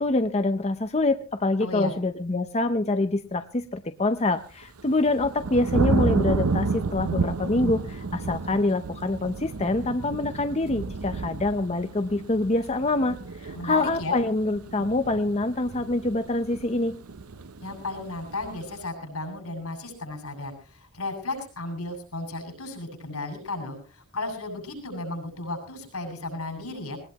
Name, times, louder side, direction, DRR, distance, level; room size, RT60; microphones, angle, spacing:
voice 1, 0.0-16.9, left 2 dB, 30° left, 8 dB, 0.7 m, -25 dB
voice 2, 1.6-1.9 13.5-14.2 17.6-27.0, left 2 dB, 90° left, 4 dB, 7.1 m, -34 dB
sound 1, 4.6-18.8, right 3 dB, 90° right, 0.8 m, -31 dB
19.5 x 19.5 x 3.0 m, 0.36 s
head